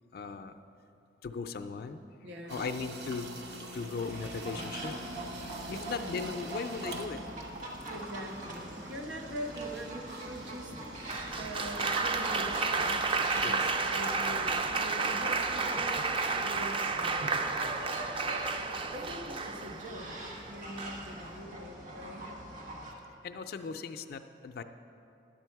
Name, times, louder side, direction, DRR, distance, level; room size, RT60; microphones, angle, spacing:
voice 1, 0.1-0.5 1.2-2.0 2.5-3.3 3.7-4.9 5.7-7.2 11.3-11.4 13.4-13.7 22.2-22.3 23.2-24.6, left 5 dB, 55° left, 9 dB, 0.4 m, -38 dB
voice 2, 2.2-2.7 5.7-6.5 7.9-10.7 11.4-13.0 13.3-17.3 18.9-22.3, right 1 dB, 85° right, 1 dB, 1.1 m, -43 dB
sound 1, 2.5-12.1, right 1 dB, 70° right, 0.8 m, -45 dB
sound 2, 4.1-22.9, right 1 dB, 50° right, 1.3 m, -43 dB
Applause, 11.1-19.9 20.8-21.2, right 4 dB, 30° right, 0.4 m, -31 dB
10.5 x 7.5 x 4.6 m, 2.8 s
head